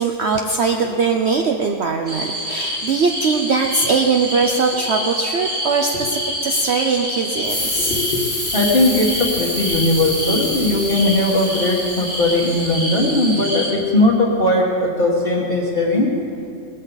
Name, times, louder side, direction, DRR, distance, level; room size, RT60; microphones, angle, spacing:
voice 1, 0.0-7.9, right 4 dB, 55° right, 3 dB, 0.9 m, -20 dB
sound 1, 2.1-13.7, equal, 35° right, 2.4 m, -27 dB
sound 2, 7.4-12.7, left 2 dB, 85° left, 4.7 m, -29 dB
voice 2, 7.8-8.2 8.5-16.1, left 2 dB, 40° left, -7 dB, 1.8 m, -18 dB
19.0 x 14.0 x 4.1 m, 2.8 s
omnidirectional pair, 1.5 m